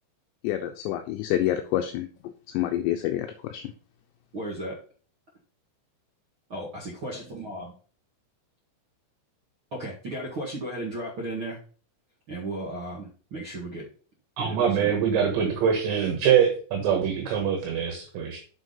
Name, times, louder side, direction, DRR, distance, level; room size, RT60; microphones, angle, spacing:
voice 1, 0.4-2.1 2.5-3.6, left 12 dB, 80° left, 6 dB, 2.6 m, -27 dB
voice 2, 4.3-4.7 6.5-7.7 9.7-11.6 12.3-13.8 14.4-14.9, right 1 dB, 55° right, -6 dB, 1.4 m, -35 dB
voice 3, 14.4-18.4, right 8 dB, 70° right, 2 dB, 3.5 m, -24 dB
7.2 x 6.3 x 5.5 m, 0.41 s
omnidirectional pair, 5.7 m